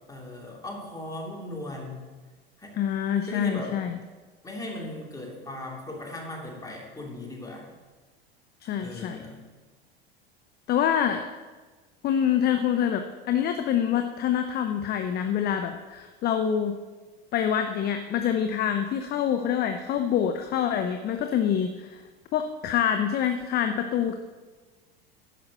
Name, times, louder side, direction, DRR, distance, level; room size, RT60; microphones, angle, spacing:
voice 1, 0.1-2.1 2.6-2.8 3.3-3.7 4.4-7.7 8.8-9.4, left 1 dB, 10° left, -2 dB, 2.9 m, -38 dB
voice 2, 2.7-4.0 8.6-9.2 10.7-11.2 12.0-16.7 17.3-22.0 22.3-24.2, left 9 dB, 30° left, 7 dB, 0.7 m, -26 dB
10.5 x 5.9 x 6.4 m, 1.3 s
figure-of-eight pair, 80°, 31 cm